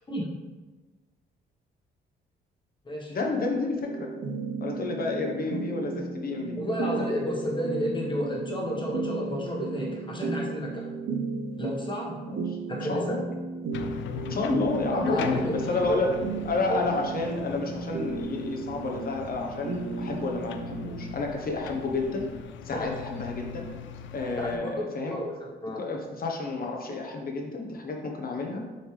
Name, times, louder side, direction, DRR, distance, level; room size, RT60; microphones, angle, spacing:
voice 1, 3.1-4.1 4.6-6.6 12.3-12.6 12.9-13.2 14.3-16.1 16.4-22.3 22.6-23.7 24.1-25.2 25.7-28.6, left 3 dB, 50° left, 1 dB, 1.2 m, -30 dB
sound 1, 3.8-21.1, right 4 dB, 65° right, 0.8 m, -35 dB
voice 2, 6.6-10.9 11.6-12.2 12.7-13.2 14.9-16.0 16.7-16.8 22.7-22.9 24.4-25.3 25.6-25.8, equal, 25° left, -2 dB, 1.6 m, -31 dB
sound 2, 13.7-24.6, left 7 dB, 70° left, 0.5 m, -40 dB
6.5 x 4.3 x 3.4 m, 1.2 s
cardioid pair, 90°, 20 cm